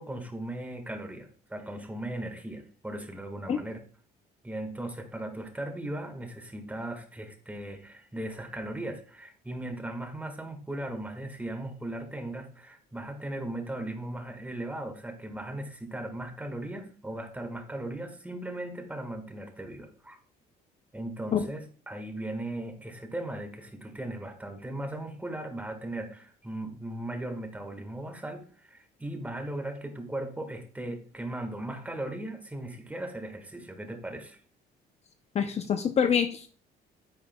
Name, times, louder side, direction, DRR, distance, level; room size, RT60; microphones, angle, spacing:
voice 1, 0.0-3.8 4.4-20.2 20.9-34.4, right 1 dB, 10° right, 7 dB, 1.6 m, -38 dB
voice 2, 35.3-36.5, left 7 dB, 40° left, 8 dB, 0.6 m, -25 dB
9.7 x 8.7 x 2.3 m, 0.42 s
cardioid pair, 110°, 17 cm